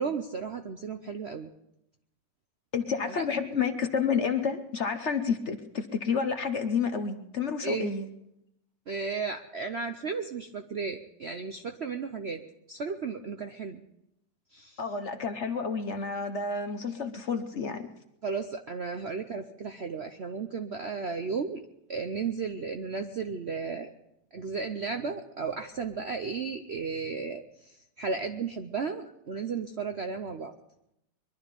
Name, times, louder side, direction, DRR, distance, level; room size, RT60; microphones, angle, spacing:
voice 1, 0.0-1.5 3.1-3.2 7.6-7.9 8.9-12.4 12.7-13.8 14.5-14.8 18.2-21.6 21.9-23.9 24.3-30.5, right 5 dB, 55° right, 6 dB, 0.7 m, -34 dB
voice 2, 2.7-8.1 14.8-17.9, left 6 dB, 50° left, 8 dB, 1.0 m, -30 dB
22.5 x 12.0 x 5.2 m, 0.82 s
omnidirectional pair, 1.9 m